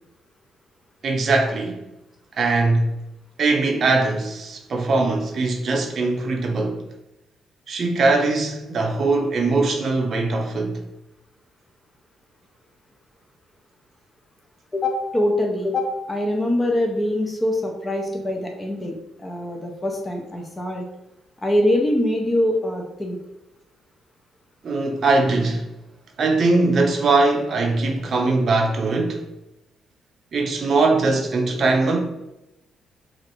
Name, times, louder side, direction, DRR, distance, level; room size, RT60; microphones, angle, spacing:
voice 1, 1.0-1.8 2.3-2.9 3.4-6.8 7.7-10.8 24.6-25.7 26.2-29.3 30.3-32.0, right 3 dB, 50° right, 0.6 m, -21 dB
voice 2, 14.7-20.9 21.4-23.2, left 1 dB, 20° left, 0.5 m, -23 dB
3.0 x 2.4 x 3.0 m
cardioid pair, 90°, 0 cm